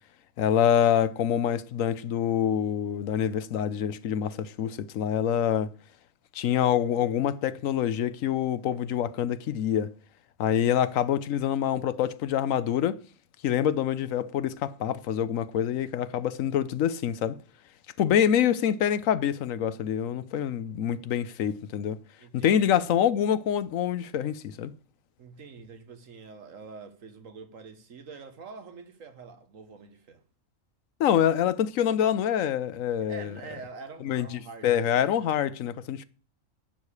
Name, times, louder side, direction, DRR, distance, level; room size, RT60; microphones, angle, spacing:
voice 1, 0.4-5.7 6.3-9.9 10.4-13.0 13.4-17.4 18.0-22.0 22.3-24.7 31.0-33.3 34.0-36.0, left 9 dB, 85° left, 1.1 m, -26 dB
voice 2, 22.2-22.8 25.2-30.2 33.1-35.1, right 4 dB, 80° right, 1.7 m, -45 dB
11.0 x 4.9 x 8.4 m
omnidirectional pair, 1.3 m